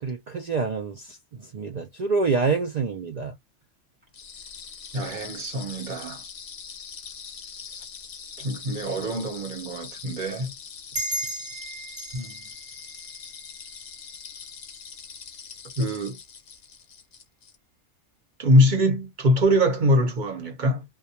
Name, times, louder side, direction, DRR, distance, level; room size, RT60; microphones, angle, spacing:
voice 1, 0.0-3.4, right 4 dB, 80° right, 0.3 m, -27 dB
sound 1, 4.1-17.6, left 6 dB, 55° left, 0.8 m, -42 dB
voice 2, 4.9-6.2 8.4-10.5 12.1-12.5 15.8-16.2 18.4-20.8, equal, 45° right, 0.9 m, -23 dB
sound 2, 10.9-14.0, right 1 dB, 10° right, 0.7 m, -35 dB
2.3 x 2.2 x 2.7 m
omnidirectional pair, 1.2 m